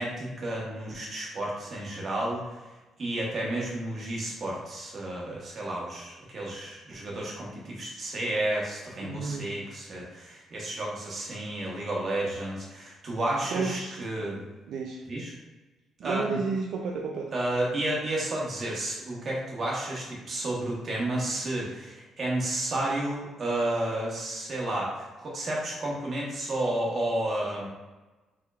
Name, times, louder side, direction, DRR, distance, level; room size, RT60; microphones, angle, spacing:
voice 1, 0.0-2.6 3.0-14.4 15.1-15.3 16.0-16.4 17.3-27.7, right 1 dB, 35° right, -3 dB, 1.1 m, -31 dB
voice 2, 9.0-9.6 13.5-14.1 14.7-15.1 16.0-17.3, right 4 dB, 65° right, 0 dB, 0.4 m, -32 dB
4.6 x 3.5 x 2.4 m, 1.2 s
cardioid pair, 160°, 0 cm